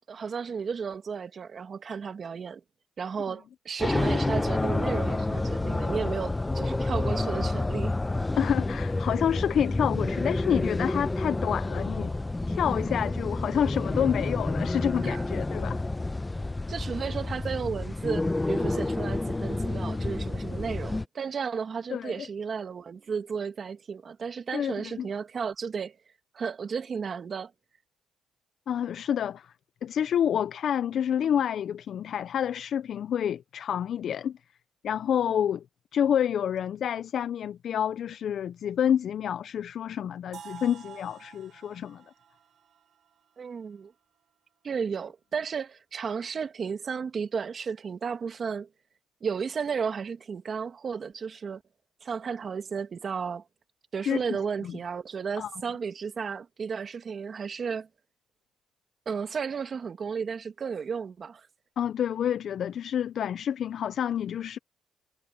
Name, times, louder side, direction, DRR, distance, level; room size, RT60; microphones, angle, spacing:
voice 1, 0.1-2.6 3.0-8.0 15.0-15.2 16.7-26.0 26.3-27.5 43.4-43.9 44.6-48.7 49.2-51.6 52.0-53.4 53.9-57.9 59.1-61.5, right 6 dB, 45° right, 2.0 m, -33 dB
sound 1, 3.8-21.0, left 2 dB, 15° left, 0.7 m, -29 dB
voice 2, 8.4-12.1 12.5-15.8 21.9-22.1 24.5-25.1 28.7-29.5 29.8-34.4 34.8-35.6 35.9-42.0 54.0-54.2 54.6-54.8 55.4-55.5 61.8-64.6, left 9 dB, 65° left, 0.5 m, -28 dB
sound 2, 40.3-44.2, right 8 dB, 60° right, 1.9 m, -49 dB
cardioid pair, 90°, 0 cm